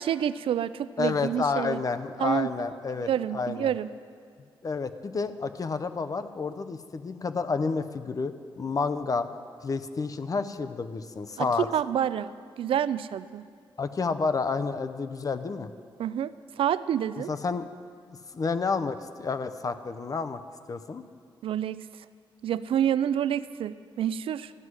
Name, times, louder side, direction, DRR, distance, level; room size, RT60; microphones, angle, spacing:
voice 1, 0.0-1.8 2.2-2.5 3.1-3.9 11.4-13.5 16.0-17.3 21.4-21.9 22.4-24.5, right 10 dB, 80° right, 16 dB, 0.4 m, -28 dB
voice 2, 1.0-3.7 4.6-9.3 9.6-11.7 13.8-15.7 17.3-17.7 18.3-20.4 20.7-21.0, left 4 dB, 40° left, 10 dB, 0.7 m, -30 dB
13.5 x 6.2 x 9.6 m, 2.2 s
cardioid pair, 100°, 9 cm